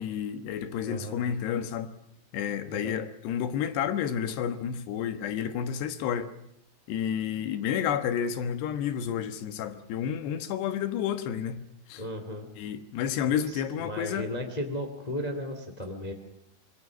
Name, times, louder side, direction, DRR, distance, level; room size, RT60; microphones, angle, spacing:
voice 1, 0.0-1.9 2.3-6.3 6.9-12.0 12.6-14.3, left 9 dB, 80° left, 3.5 m, -30 dB
voice 2, 0.8-1.2 2.7-3.0 12.0-12.5 13.3-16.1, left 1 dB, 20° left, 1.2 m, -35 dB
26.0 x 21.0 x 6.2 m
omnidirectional pair, 4.7 m